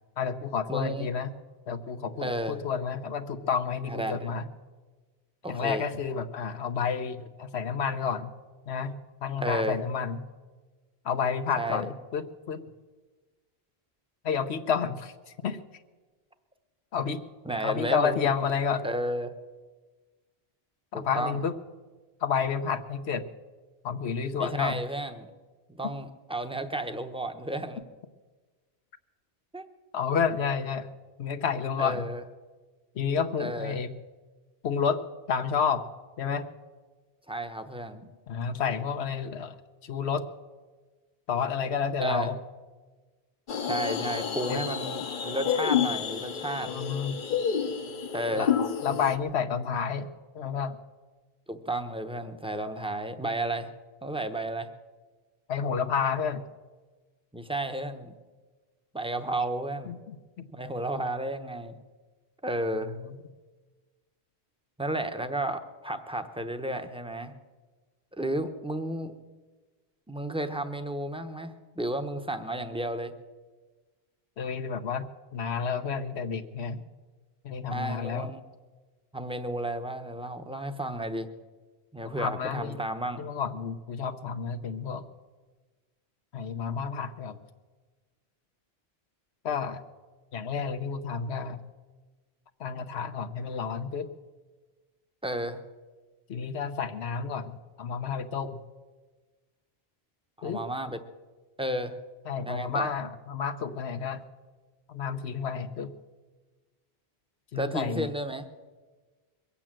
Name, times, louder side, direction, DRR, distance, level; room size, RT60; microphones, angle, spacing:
voice 1, 0.2-1.3 1.7-4.4 5.5-8.3 8.7-10.3 11.0-12.6 14.2-15.6 16.9-17.2 17.6-18.9 20.9-21.6 22.2-23.2 23.8-24.8 29.9-30.9 31.2-32.1 32.9-33.9 34.6-35.0 35.3-35.8 36.2-36.5 38.3-39.6 39.8-40.2 41.3-42.4 44.5-44.6 46.7-47.2 48.3-48.5 48.8-50.1 50.3-50.8 55.5-56.4 59.9-60.5 63.0-63.2 74.4-76.8 77.4-78.3 82.0-82.8 83.2-85.0 86.3-87.4 89.4-89.8 90.3-91.6 92.6-94.1 96.3-98.6 100.4-100.6 102.3-104.2 104.9-105.9 107.5-108.1, left 6 dB, 85° left, 7 dB, 1.1 m, -30 dB
voice 2, 0.7-1.1 2.2-2.6 3.9-4.3 5.4-5.9 9.4-9.8 11.6-11.9 17.4-18.3 18.8-19.3 20.9-21.4 24.4-25.3 25.7-27.8 29.5-29.7 31.8-32.2 33.4-33.8 37.3-38.1 42.0-42.3 43.7-46.7 48.1-48.5 51.5-53.7 54.0-54.7 57.3-58.2 58.9-60.0 60.5-61.8 62.4-62.9 64.8-67.3 68.1-69.1 70.1-73.1 77.7-78.4 79.1-81.3 81.9-83.2 95.2-95.6 100.4-101.0 101.6-102.0 102.4-102.9 107.5-108.5, right 1 dB, 5° right, 8 dB, 0.8 m, -32 dB
sound 1, 43.5-49.2, left 8 dB, 55° left, 0.9 m, -29 dB
22.5 x 8.5 x 7.5 m, 1.3 s
omnidirectional pair, 1.1 m